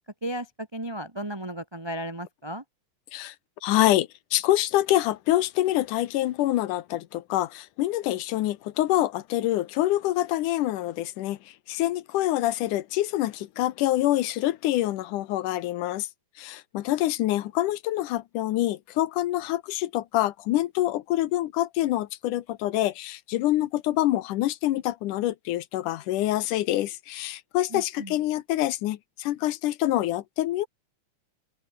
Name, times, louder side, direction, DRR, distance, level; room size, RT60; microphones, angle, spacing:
voice 1, 0.2-2.6 27.7-28.1, right 1 dB, 10° right, 1.6 m, -34 dB
voice 2, 3.6-16.1 16.4-30.7, left 15 dB, 80° left, 2.5 m, -26 dB
open air
omnidirectional pair, 3.6 m